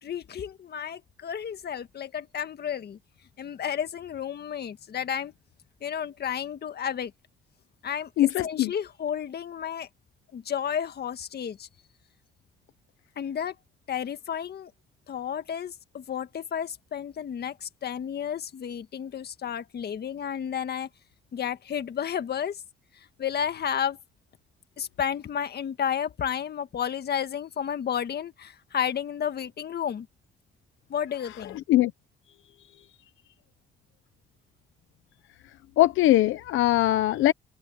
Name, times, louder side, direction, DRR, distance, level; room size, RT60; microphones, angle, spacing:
voice 1, 0.0-3.0 3.4-5.3 5.8-7.1 7.8-9.9 10.3-11.7 13.2-13.5 13.9-14.7 15.1-20.9 21.3-22.6 23.2-24.0 24.8-30.1 30.9-31.6, left 8 dB, 55° left, 1.7 m, -32 dB
voice 2, 8.2-8.7 31.7-31.9 35.8-37.3, left 14 dB, 85° left, 0.9 m, -21 dB
cardioid pair, 90°, 20 cm